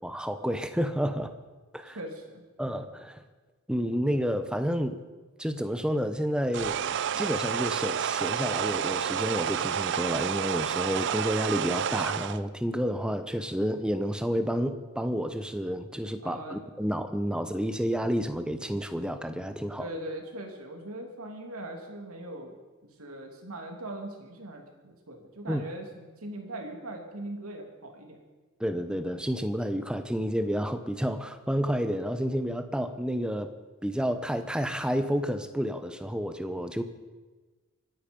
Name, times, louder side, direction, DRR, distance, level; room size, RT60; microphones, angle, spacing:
voice 1, 0.0-1.3 1.7-2.0 2.6-3.2 3.7-5.0 5.4-6.8 7.2-19.9 25.5-25.6 28.6-33.5 33.8-36.8, equal, 5° right, 9 dB, 0.9 m, -30 dB
voice 2, 1.9-2.4 16.2-16.6 19.8-22.5 22.8-28.2, right 1 dB, 75° right, 2 dB, 2.9 m, -40 dB
sound 1, 6.5-12.4, right 8 dB, 55° right, 0.5 m, -30 dB
24.5 x 10.0 x 5.4 m, 1.3 s
head